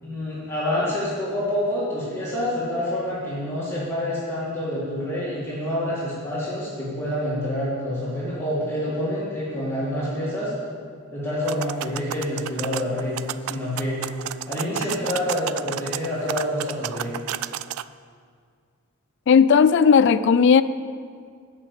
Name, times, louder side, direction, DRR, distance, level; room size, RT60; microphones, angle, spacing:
voice 1, 0.0-10.5 11.1-13.2 13.5-14.0 14.5-17.2, left 1 dB, 10° left, -9 dB, 2.2 m, -27 dB
sound 1, 11.4-17.8, right 10 dB, 85° right, 0.3 m, -32 dB
voice 2, 19.3-20.6, left 6 dB, 55° left, 14 dB, 0.3 m, -15 dB
9.0 x 6.3 x 8.3 m, 2.1 s
head